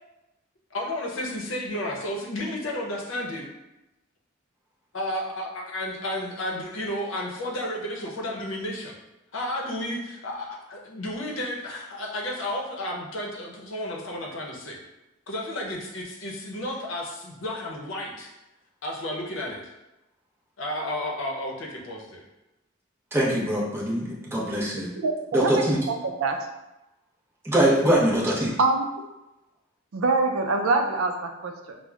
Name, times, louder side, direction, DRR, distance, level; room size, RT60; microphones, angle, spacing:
voice 1, 0.7-3.5 4.9-8.9 9.3-14.8 15.3-18.3 18.8-19.7 20.6-22.2, left 1 dB, 70° left, -1 dB, 0.7 m, -32 dB
voice 2, 23.1-24.9 25.3-25.8 27.4-28.5, right 1 dB, 10° right, -6 dB, 0.7 m, -23 dB
voice 3, 25.0-26.5 28.6-28.8 29.9-31.8, right 3 dB, 85° right, 5 dB, 0.4 m, -25 dB
5.9 x 2.1 x 2.3 m, 0.96 s
head